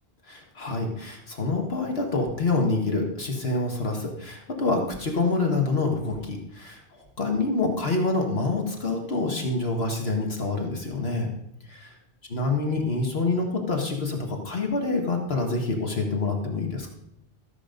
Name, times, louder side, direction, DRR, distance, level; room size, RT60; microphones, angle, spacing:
voice 1, 0.3-11.3 12.3-16.9, left 3 dB, 65° left, 2 dB, 1.9 m, -26 dB
13.5 x 7.3 x 5.2 m, 0.78 s
omnidirectional pair, 1.1 m